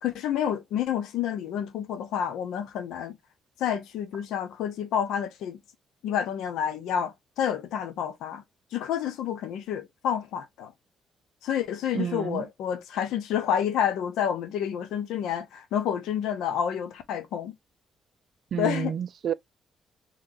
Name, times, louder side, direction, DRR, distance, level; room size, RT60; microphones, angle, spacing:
voice 1, 0.0-3.2 3.6-5.6 6.0-8.4 8.7-10.7 11.4-17.5 18.6-18.9, left 9 dB, 85° left, 0.8 m, -29 dB
voice 2, 11.9-12.4 18.5-19.3, right 8 dB, 60° right, 0.4 m, -29 dB
3.9 x 3.2 x 2.6 m
cardioid pair, 90°, 0 cm